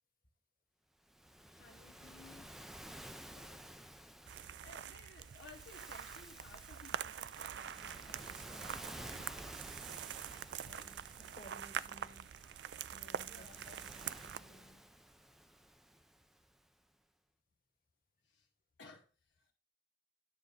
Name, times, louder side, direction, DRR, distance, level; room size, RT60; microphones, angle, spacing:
Waves surf, 1.1-16.6, equal, ahead, 0.4 m, -53 dB
voice 1, 1.5-2.6 3.2-3.8 4.6-9.4 10.6-10.9 11.2-11.4 13.2-14.8 18.2-18.5 18.8-19.5, left 3 dB, 85° left, 1.2 m, -59 dB
sound 1, 4.3-14.4, right 9 dB, 70° right, 0.4 m, -45 dB
voice 2, 10.8-12.4 12.9-13.6, left 1 dB, 50° left, 2.1 m, -58 dB
10.0 x 6.7 x 3.9 m
head